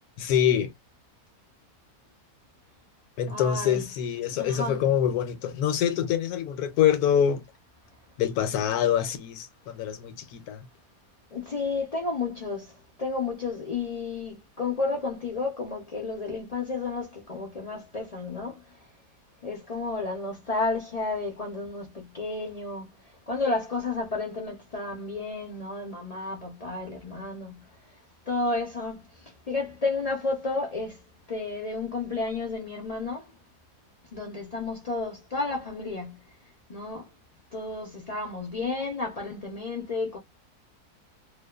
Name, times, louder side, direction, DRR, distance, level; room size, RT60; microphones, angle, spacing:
voice 1, 0.2-0.7 3.2-7.4 8.2-10.7, left 9 dB, 75° left, 1.1 m, -25 dB
voice 2, 3.3-3.9 4.3-4.8 11.3-12.7 13.0-18.6 19.4-22.8 23.3-27.6 28.3-29.0 29.5-31.0 31.3-33.3 34.1-36.2 36.7-37.0 37.5-40.2, left 3 dB, 55° left, 0.4 m, -31 dB
2.7 x 2.1 x 2.3 m
omnidirectional pair, 1.6 m